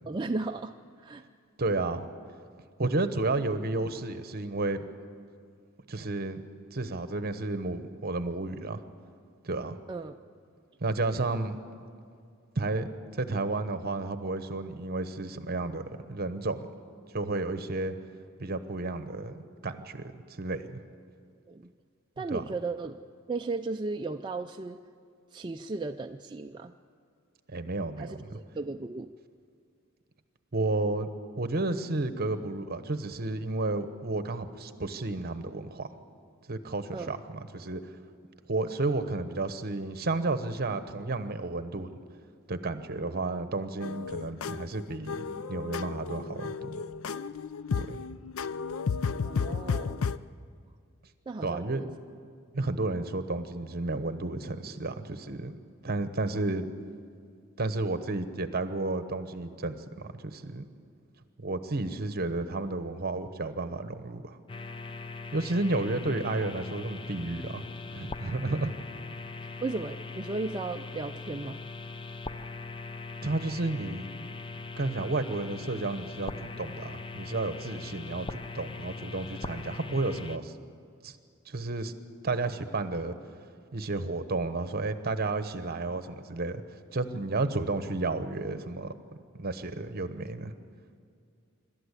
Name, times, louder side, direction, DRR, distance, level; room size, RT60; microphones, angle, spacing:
voice 1, 0.1-0.7 1.0-1.2 9.9-10.1 21.5-21.7 22.2-23.0 23.3-24.8 25.3-26.7 28.0-29.1 36.9-37.1 49.2-50.1 51.3-51.9 69.6-71.6, right 3 dB, 20° right, 4 dB, 0.4 m, -35 dB
voice 2, 1.6-2.1 2.8-4.8 5.9-6.4 6.7-8.8 9.4-9.8 10.8-11.6 12.5-12.9 13.1-15.8 16.1-16.7 17.1-17.9 18.4-20.8 22.2-22.4 27.5-28.3 30.5-31.1 31.4-35.9 36.5-37.9 38.5-41.9 42.5-45.1 45.5-46.7 47.8-48.0 51.4-52.0 52.5-55.6 55.8-56.7 57.6-59.8 60.1-60.6 61.4-64.4 65.3-67.6 67.9-68.7 73.2-74.1 74.8-80.5 81.0-81.2 81.5-81.9 82.2-83.1 83.7-86.6 86.9-88.9 89.3-90.5, right 2 dB, 50° right, 11 dB, 1.1 m, -32 dB
sound 1, 43.8-50.2, left 5 dB, 80° left, 0.5 m, -33 dB
sound 2, 64.5-80.4, left 3 dB, 25° left, 0.6 m, -40 dB
25.5 x 12.5 x 8.2 m, 2.3 s
head